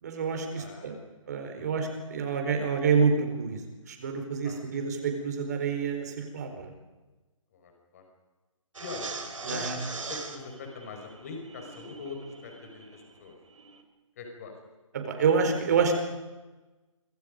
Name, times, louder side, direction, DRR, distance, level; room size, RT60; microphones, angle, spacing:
voice 1, 0.0-0.9 1.3-3.6 3.9-6.7 9.4-9.8 14.9-16.0, right 5 dB, 30° right, 5 dB, 4.6 m, -27 dB
voice 2, 0.6-1.1 1.5-1.8 4.4-4.8 7.5-8.0 8.8-9.1 9.4-13.4 14.2-14.5, left 4 dB, 30° left, 3 dB, 5.6 m, -43 dB
sound 1, 8.7-13.8, right 4 dB, 70° right, 4.6 m, -41 dB
29.0 x 26.0 x 5.3 m, 1.2 s
hypercardioid pair, 170°, 17 cm